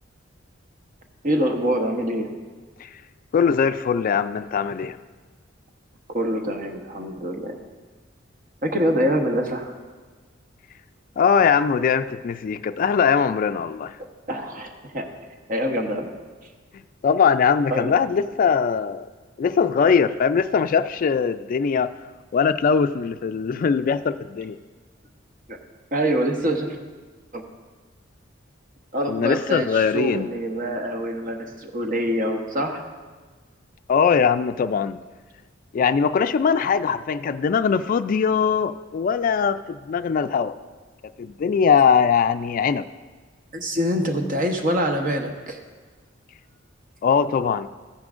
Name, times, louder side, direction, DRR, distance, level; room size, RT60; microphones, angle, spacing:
voice 1, 1.2-2.3 6.1-7.6 8.6-9.7 14.3-15.1 15.5-16.1 17.7-17.9 25.5-25.6 25.9-26.8 27.3-27.4 28.9-32.9 43.5-45.6, equal, 45° right, 3 dB, 1.0 m, -25 dB
voice 2, 3.3-5.0 11.2-13.9 16.7-19.1 19.4-21.9 22.3-24.6 29.1-30.3 33.9-35.0 35.7-40.5 41.0-42.9 47.0-47.7, left 6 dB, 45° left, 11 dB, 0.3 m, -21 dB
14.0 x 9.7 x 2.5 m, 1.4 s
head